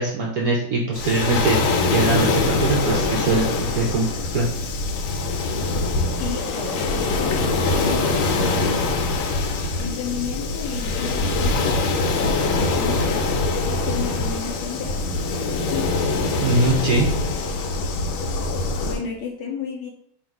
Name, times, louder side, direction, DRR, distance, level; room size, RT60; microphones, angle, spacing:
voice 1, 0.0-4.1 4.3-4.5 16.4-17.1, right 3 dB, 70° right, -1 dB, 0.8 m, -22 dB
Waves surf, 0.9-19.0, left 3 dB, 90° left, 1.4 m, -23 dB
voice 2, 6.2-9.1 9.8-15.2 15.5-15.9 18.8-19.9, left 5 dB, 75° left, 1 dB, 1.0 m, -33 dB
3.6 x 2.4 x 4.5 m, 0.72 s
omnidirectional pair, 2.2 m